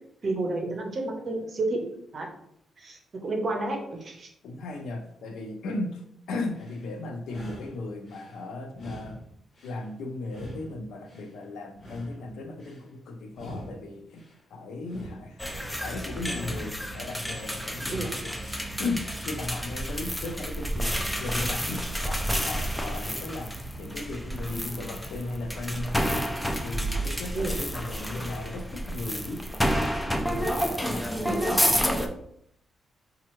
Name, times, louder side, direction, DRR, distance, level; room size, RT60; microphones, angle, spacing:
voice 1, 0.2-1.8 2.1-2.3 2.8-4.3 17.9-18.1 27.3-27.5 31.2-31.4, right 2 dB, 35° right, 2 dB, 0.7 m, -30 dB
voice 2, 4.4-9.2 9.6-26.3 26.6-29.5 30.3-32.1, left 2 dB, 85° left, 5 dB, 0.5 m, -36 dB
sound 1, 6.4-6.9 7.2-8.4 8.7-9.9 10.2-11.3 11.7-12.8 13.3-14.4 14.8-15.9 16.3-17.3 17.7-18.4, equal, 40° left, 0.8 m, -44 dB
sound 2, 15.4-32.1, equal, 5° left, 0.3 m, -30 dB
4.3 x 2.3 x 3.0 m, 0.74 s
wide cardioid pair, 150°, 0 cm